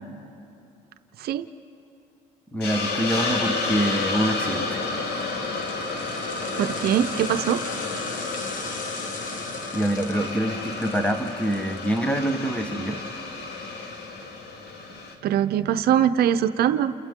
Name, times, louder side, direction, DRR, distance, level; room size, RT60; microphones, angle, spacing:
voice 1, 2.5-4.8 9.7-13.0, right 1 dB, 5° left, 8 dB, 1.3 m, -25 dB
Hiss, 2.6-15.1, left 3 dB, 70° left, 2.4 m, -31 dB
sound 1, 5.1-12.3 12.6-12.7, left 4 dB, 50° left, 1.7 m, -40 dB
voice 2, 6.6-7.6 15.2-16.9, right 10 dB, 65° right, 10 dB, 0.6 m, -22 dB
30.0 x 29.0 x 3.7 m, 2.6 s
cardioid pair, 110°, 17 cm